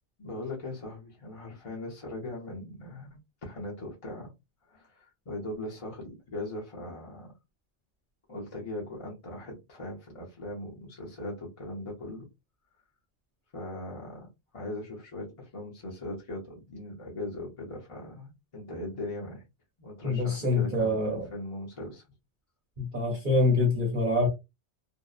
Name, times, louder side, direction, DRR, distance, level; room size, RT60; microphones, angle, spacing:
voice 1, 0.2-4.3 4.7-7.3 8.3-12.3 13.5-14.3 14.5-19.4 19.8-22.0, left 1 dB, 35° left, 0.7 m, -39 dB
voice 2, 20.0-21.3 22.8-24.3, left 2 dB, 50° right, 0.8 m, -25 dB
2.7 x 2.0 x 2.3 m
omnidirectional pair, 1.2 m